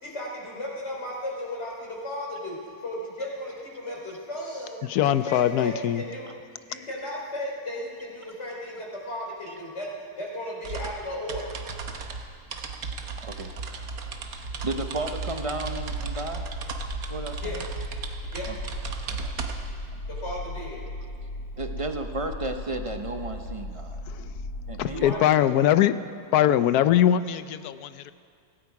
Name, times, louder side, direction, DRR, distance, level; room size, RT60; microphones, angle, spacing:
voice 1, 0.0-4.8 5.0-6.3 6.7-9.9 10.2-11.5 17.4-17.7 18.3-18.5 20.1-20.8 24.9-25.5 25.8-25.9, left 1 dB, 45° left, -3 dB, 3.5 m, -35 dB
voice 2, 4.9-6.0 24.8-25.9 26.3-28.1, left 11 dB, 90° left, 13 dB, 1.1 m, -21 dB
sound 1, 10.6-19.9, right 4 dB, 75° right, 1.5 m, -35 dB
voice 3, 13.2-13.5 14.2-16.4 17.1-17.6 18.5-18.6 19.1-19.3 21.6-24.0 24.7-25.1, right 2 dB, 40° right, 6 dB, 0.5 m, -33 dB
sound 2, 13.7-25.1, left 2 dB, 70° left, 2.0 m, -38 dB
16.5 x 16.5 x 4.8 m, 2.3 s
omnidirectional pair, 1.6 m